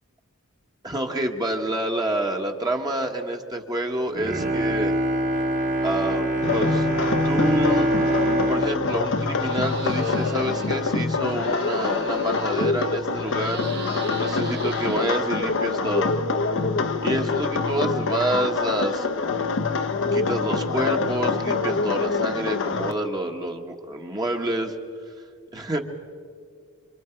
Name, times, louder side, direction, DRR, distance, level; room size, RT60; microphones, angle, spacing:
voice 1, 0.8-5.0 5.8-6.9 7.2-7.9 8.5-16.1 17.0-19.5 20.1-24.7 25.5-25.8, right 1 dB, 20° right, 2 dB, 1.3 m, -28 dB
Bowed string instrument, 4.1-10.3 10.8-10.9, right 1 dB, 35° right, 1.6 m, -25 dB
sound 1, 6.4-22.9, left 4 dB, 60° left, 0.8 m, -25 dB
sound 2, 9.3-10.8 11.1-12.9 13.2-15.4, right 3 dB, 50° right, 2.5 m, -38 dB
27.5 x 25.5 x 4.5 m, 2.1 s
head